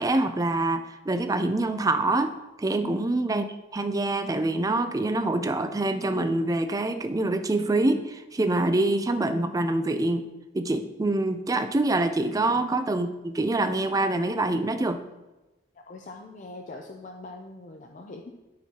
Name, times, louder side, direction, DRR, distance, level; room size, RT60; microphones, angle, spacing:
voice 1, 0.0-3.5 3.7-10.3 10.5-15.0, right 2 dB, 20° right, 9 dB, 0.4 m, -25 dB
voice 2, 15.8-18.3, left 2 dB, 40° left, 2 dB, 0.5 m, -42 dB
12.5 x 4.6 x 2.9 m, 1.1 s
head